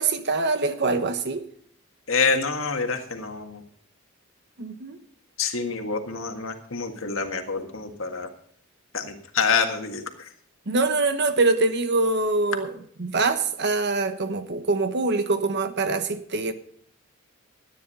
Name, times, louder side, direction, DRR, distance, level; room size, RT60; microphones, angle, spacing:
voice 1, 0.0-1.4 4.6-5.0 10.7-16.5, right 3 dB, 60° right, 1.2 m, -24 dB
voice 2, 2.1-3.6 5.4-8.3 8.9-10.0, left 5 dB, 75° left, 1.8 m, -26 dB
13.5 x 9.7 x 5.5 m
head